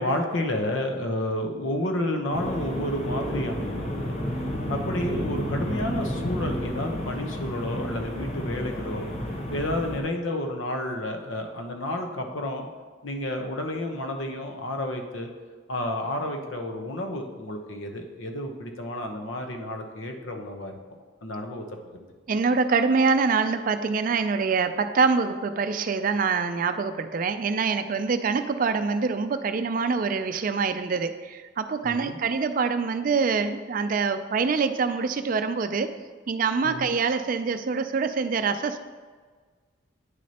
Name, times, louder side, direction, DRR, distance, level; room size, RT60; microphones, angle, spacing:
voice 1, 0.0-4.1 4.7-9.1 9.5-12.7 13.0-15.3 15.7-20.7 21.2-21.6 21.9-22.0 31.8-32.2 36.6-36.9, left 1 dB, 85° left, 4 dB, 0.9 m, -30 dB
sound 1, 2.3-10.0, equal, 30° left, 0.9 m, -31 dB
voice 2, 22.3-35.9 36.3-38.8, right 5 dB, 45° right, 10 dB, 0.4 m, -25 dB
9.3 x 6.2 x 2.9 m, 1.5 s
head